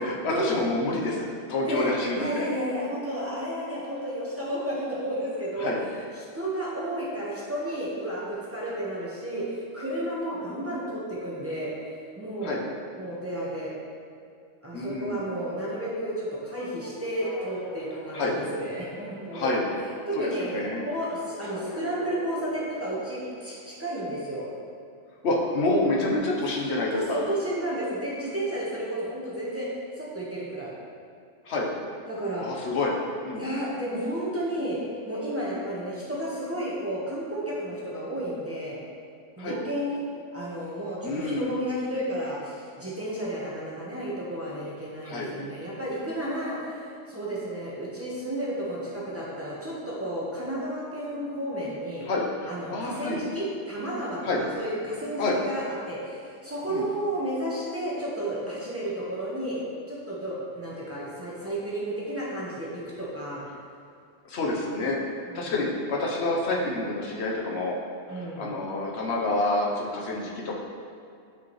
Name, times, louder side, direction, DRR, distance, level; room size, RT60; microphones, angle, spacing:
voice 1, 0.0-2.4 5.6-5.8 12.4-12.6 14.7-15.2 18.1-18.4 19.3-19.6 20.2-20.8 25.2-27.2 31.5-31.7 32.4-32.9 33.2-33.4 39.4-39.6 41.0-41.5 45.1-45.3 52.1-52.2 52.7-53.2 54.3-54.4 55.2-55.4 56.7-56.8 64.3-65.0 65.3-67.8 68.1-70.5, left 2 dB, 60° left, -2 dB, 1.2 m, -28 dB
voice 2, 1.6-5.7 6.0-11.7 12.2-12.6 12.9-13.7 14.6-19.6 20.1-20.6 20.8-24.4 26.5-29.7 30.0-30.7 32.1-32.5 33.3-34.8 35.0-38.8 39.4-40.0 40.3-52.1 52.5-59.6 59.9-63.4 65.3-65.5 68.1-68.5, right 1 dB, 10° right, -7 dB, 1.3 m, -32 dB
sound 1, 16.5-23.3, left 1 dB, 35° left, 0.6 m, -42 dB
9.4 x 5.0 x 3.2 m, 2.4 s
omnidirectional pair, 1.3 m